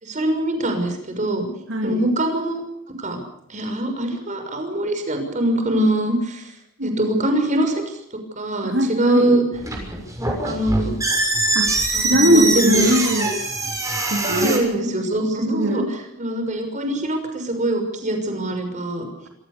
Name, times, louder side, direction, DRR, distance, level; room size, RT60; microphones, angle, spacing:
voice 1, 0.0-1.5 1.8-2.6 3.0-3.2 3.5-6.5 6.8-7.8 8.4-9.4 10.4-10.9 11.9-12.9 14.2-15.8 16.2-19.1, right 1 dB, 40° right, 6 dB, 6.2 m, -23 dB
voice 2, 1.7-2.0 6.8-7.1 8.6-9.4 11.5-13.5 13.9-14.7 15.4-15.9, right 1 dB, 80° right, 3 dB, 3.2 m, -21 dB
sound 1, 9.5-14.6, right 2 dB, 15° right, 6.5 m, -23 dB
27.0 x 18.0 x 7.0 m, 0.75 s
head